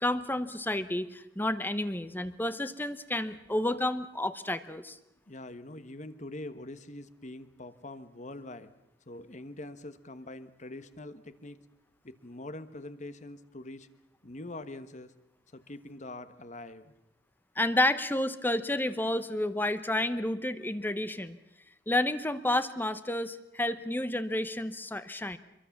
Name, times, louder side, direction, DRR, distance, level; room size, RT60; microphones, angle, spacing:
voice 1, 0.0-5.0 17.6-21.4 21.9-25.4, left 1 dB, 10° left, 12 dB, 0.9 m, -30 dB
voice 2, 5.3-8.7 9.1-11.6 12.0-13.9 14.2-15.1 15.5-16.9, left 2 dB, 40° left, 12 dB, 1.3 m, -44 dB
25.0 x 23.0 x 7.2 m, 0.87 s
head